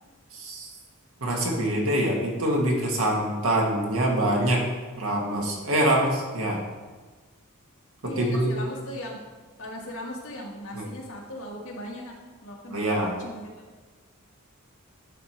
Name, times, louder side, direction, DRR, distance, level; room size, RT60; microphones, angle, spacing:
voice 1, 0.3-0.7 1.2-4.7 5.0-6.6 8.2-8.5 10.7-10.9 12.7-13.1, right 1 dB, 70° right, 0 dB, 1.6 m, -25 dB
voice 2, 8.0-9.3 9.6-13.5, left 1 dB, 65° left, -1 dB, 1.5 m, -38 dB
11.0 x 3.8 x 4.4 m, 1.3 s
head